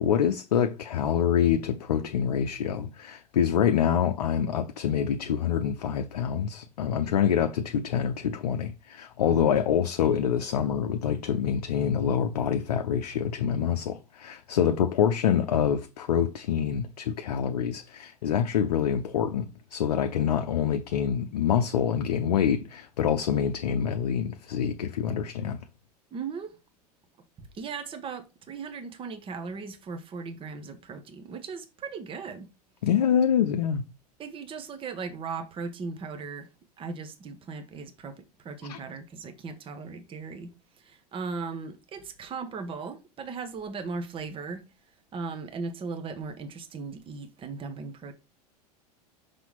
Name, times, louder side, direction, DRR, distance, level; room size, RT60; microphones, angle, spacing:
voice 1, 0.0-25.6 32.8-33.8 38.7-38.8, left 8 dB, 65° left, 0.6 m, -26 dB
voice 2, 26.1-26.6 27.4-32.5 34.2-36.5 36.8-40.5 40.8-44.7 45.1-48.1, right 4 dB, 25° right, 1.1 m, -37 dB
5.9 x 3.4 x 5.6 m
figure-of-eight pair, 85°, 21 cm